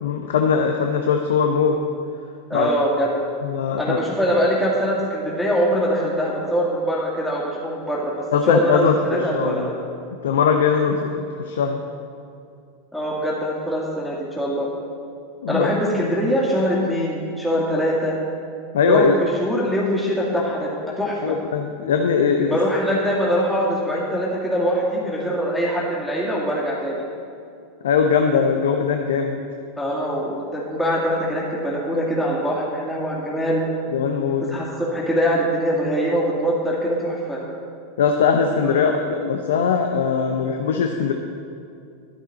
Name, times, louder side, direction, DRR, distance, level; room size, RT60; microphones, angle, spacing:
voice 1, 0.0-1.8 2.5-2.7 3.4-4.0 8.3-9.0 9.3-9.7 10.2-11.8 15.4-15.7 18.7-19.2 21.2-22.6 27.8-29.4 33.9-34.6 38.0-41.1, left 6 dB, 75° left, 4 dB, 0.7 m, -20 dB
voice 2, 2.5-3.1 3.8-9.8 12.9-14.7 15.5-18.2 18.8-21.4 22.5-27.0 29.8-33.6 34.4-37.4 38.8-38.9, equal, 5° left, -6 dB, 2.4 m, -23 dB
11.5 x 10.0 x 4.2 m, 2.4 s
hypercardioid pair, 95°, 0 cm